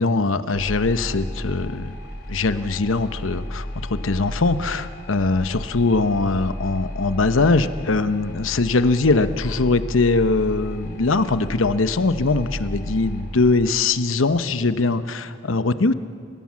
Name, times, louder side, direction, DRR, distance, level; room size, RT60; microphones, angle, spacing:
voice 1, 0.0-1.9 2.3-15.9, left 3 dB, 85° left, 12 dB, 0.9 m, -21 dB
sound 1, 0.5-14.7, left 1 dB, 55° left, 3.3 m, -34 dB
29.0 x 17.0 x 7.5 m, 2.2 s
head